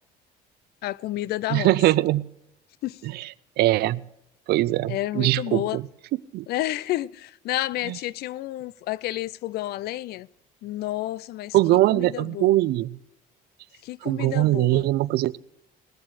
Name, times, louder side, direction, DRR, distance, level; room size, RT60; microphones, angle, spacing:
voice 1, 0.8-1.8 2.8-3.0 4.9-5.8 6.5-10.3 10.6-11.6 11.9-12.6 13.8-14.9, left 15 dB, 70° left, 0.4 m, -30 dB
voice 2, 1.5-2.3 3.0-3.3 3.6-4.0 4.5-5.8 6.3-6.5 7.9-8.0 11.5-13.0 14.0-15.4, right 16 dB, 70° right, 0.4 m, -22 dB
18.5 x 7.5 x 4.8 m
cardioid pair, 110°, 17 cm